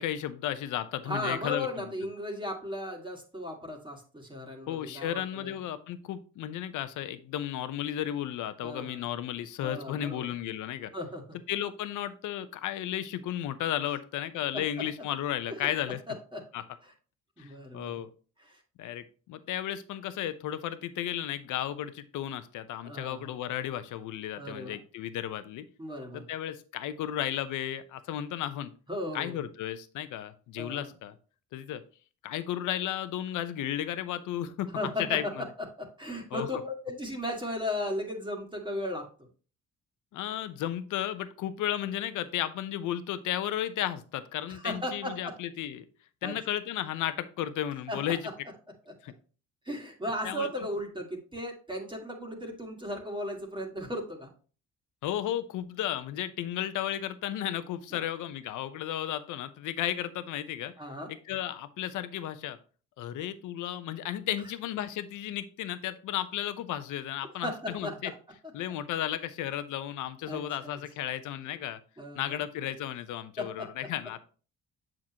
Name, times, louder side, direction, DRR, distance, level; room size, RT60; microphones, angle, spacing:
voice 1, 0.0-1.7 4.7-10.9 11.5-16.0 16.5-16.6 17.4-18.1 18.8-25.7 26.1-28.7 29.1-31.1 31.5-31.8 32.2-34.7 35.1-35.2 36.3-36.5 40.1-45.9 46.2-48.2 49.0-49.1 50.2-50.5 55.0-60.7 61.3-62.6 63.0-68.1 68.5-71.8 72.1-74.2, left 11 dB, 75° left, 13 dB, 0.7 m, -34 dB
voice 2, 1.0-5.6 8.6-9.0 9.6-10.3 10.9-11.4 14.5-14.6 15.5-15.6 16.1-16.4 16.8-16.9 17.4-18.0 18.4-18.6 22.8-23.3 24.3-24.8 25.8-26.3 28.9-29.4 30.6-30.9 34.7-35.5 35.8-39.3 44.5-45.3 46.2-46.3 47.9-48.0 48.9-49.0 49.6-54.3 57.9-58.0 60.8-61.1 67.4-68.0 70.2-70.8 72.0-72.4 73.4-73.7, left 1 dB, 15° right, 1 dB, 1.8 m, -36 dB
7.5 x 6.0 x 2.9 m, 0.38 s
cardioid pair, 85°, 31 cm